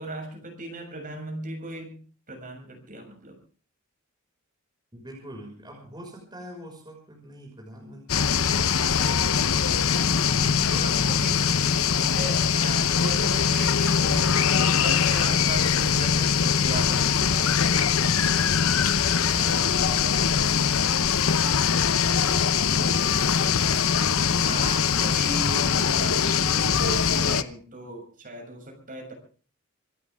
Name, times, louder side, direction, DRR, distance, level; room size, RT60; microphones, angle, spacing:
voice 1, 0.0-2.0 2.3-3.4 10.7-11.3 12.0-18.6 19.3-20.2 21.6-21.9 24.4-29.1, right 1 dB, 40° right, 3 dB, 7.1 m, -37 dB
voice 2, 4.9-8.9 9.2-12.3 20.1-20.8 21.6-24.9, equal, 20° right, -1 dB, 6.0 m, -43 dB
sound 1, 8.1-27.4, left 7 dB, 65° left, 0.9 m, -22 dB
26.5 x 14.5 x 3.6 m, 0.39 s
head